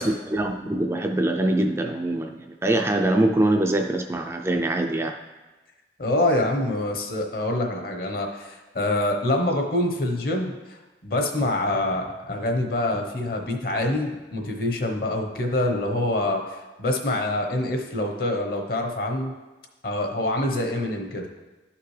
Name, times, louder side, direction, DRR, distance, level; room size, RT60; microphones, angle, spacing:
voice 1, 0.0-5.1, right 1 dB, 15° right, 3 dB, 0.4 m, -23 dB
voice 2, 6.0-19.3 19.8-21.3, left 1 dB, 55° left, 3 dB, 1.0 m, -26 dB
11.0 x 5.8 x 3.3 m, 1.2 s
head